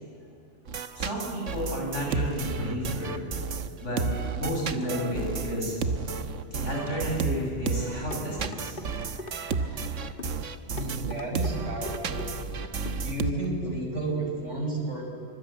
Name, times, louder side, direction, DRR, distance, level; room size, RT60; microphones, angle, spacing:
sound 1, 0.7-13.3, right 5 dB, 90° right, 1.5 m, -32 dB
voice 1, 0.9-3.2 3.8-4.0 4.3-5.8 6.5-10.1, equal, 80° left, -2 dB, 8.3 m, -32 dB
sound 2, 8.1-8.9 9.2-9.6 10.2-10.4 10.8-11.5 11.9-12.3 12.9-13.0 13.4-13.5, left 2 dB, 50° left, 1.9 m, -40 dB
voice 2, 10.7-12.3 13.0-15.0, right 2 dB, 75° right, 0 dB, 6.2 m, -32 dB
25.5 x 25.0 x 9.0 m, 2.3 s
omnidirectional pair, 1.2 m